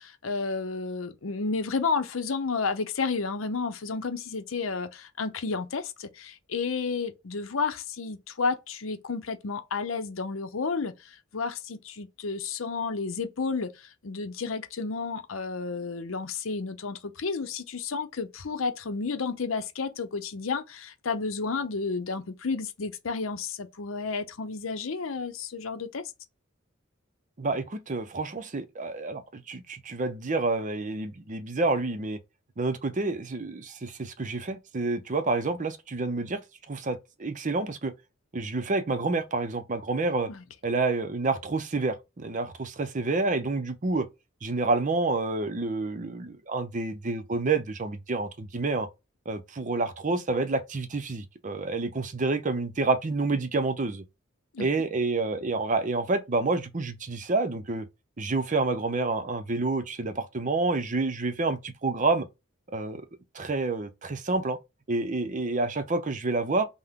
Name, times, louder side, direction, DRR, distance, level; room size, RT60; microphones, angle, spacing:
voice 1, 0.0-26.0 40.3-40.4 54.5-54.7, left 4 dB, 75° left, 0.7 m, -31 dB
voice 2, 27.4-32.2 32.6-36.4 36.7-37.9 38.3-40.3 40.6-44.1 44.4-48.9 49.3-54.0 54.6-57.9 58.2-62.3 62.7-63.0 63.3-64.6 64.9-66.7, right 3 dB, 40° right, 0.6 m, -28 dB
5.7 x 2.2 x 3.6 m
head